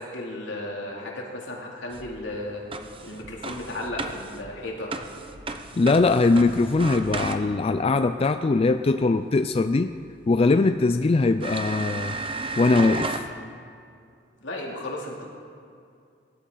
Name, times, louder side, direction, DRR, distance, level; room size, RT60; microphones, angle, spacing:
voice 1, 0.0-2.6 3.0-4.9 14.4-15.3, left 1 dB, 75° left, -2 dB, 2.8 m, -34 dB
sound 1, 1.9-7.8 10.0-10.1 10.7-10.8 11.4-13.3, right 3 dB, 30° right, 0.8 m, -34 dB
voice 2, 5.8-9.9 10.3-12.2 12.6-13.3, left 3 dB, 30° left, 9 dB, 0.4 m, -21 dB
22.0 x 12.5 x 3.9 m, 2.4 s
head